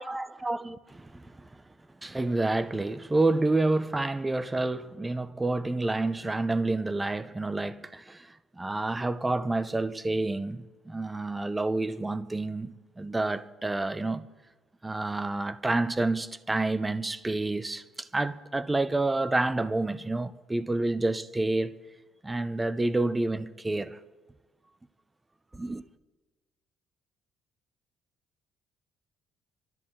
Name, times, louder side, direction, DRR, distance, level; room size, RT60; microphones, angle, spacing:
voice 1, 0.0-1.4 2.0-14.2 14.8-21.7 22.2-24.0 25.5-25.8, right 2 dB, 10° right, 0.5 m, -29 dB
26.0 x 13.0 x 3.7 m
cardioid pair, 150°, 0 cm